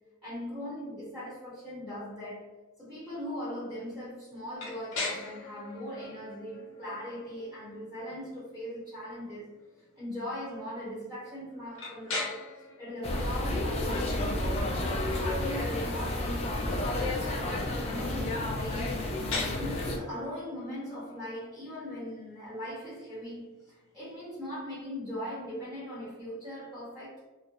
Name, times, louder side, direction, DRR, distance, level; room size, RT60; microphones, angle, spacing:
voice 1, 0.2-2.5 2.8-9.5 10.0-12.5 12.8-14.1 15.0-27.2, equal, ahead, 0.9 m, -40 dB
sound 1, 4.6-24.3, left 3 dB, 60° left, 0.6 m, -43 dB
sound 2, 13.0-20.0, left 1 dB, 30° left, 0.3 m, -31 dB
2.3 x 2.0 x 2.8 m
head